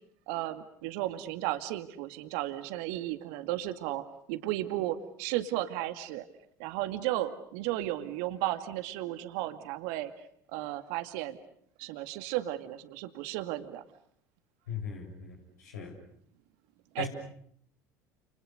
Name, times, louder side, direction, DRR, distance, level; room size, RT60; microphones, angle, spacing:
voice 1, 0.3-6.2 6.6-10.1 10.5-11.4 11.8-13.8 16.9-17.0, right 14 dB, 65° right, 9 dB, 2.3 m, -34 dB
voice 2, 14.7-16.0 17.0-17.1, left 5 dB, 80° left, 2 dB, 6.9 m, -38 dB
30.0 x 29.5 x 6.7 m, 0.65 s
hypercardioid pair, 70°, 9 cm